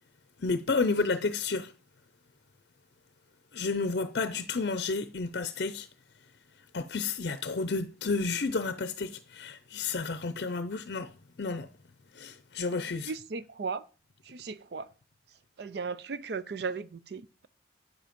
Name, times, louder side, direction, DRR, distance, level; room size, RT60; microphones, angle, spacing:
voice 1, 0.4-1.7 3.5-5.9 6.7-11.1 11.4-11.7 12.1-13.1, left 4 dB, 60° left, 0.6 m, -31 dB
voice 2, 12.7-13.8 14.2-14.9 15.6-17.5, right 5 dB, 60° right, 0.4 m, -37 dB
9.4 x 7.6 x 5.1 m
head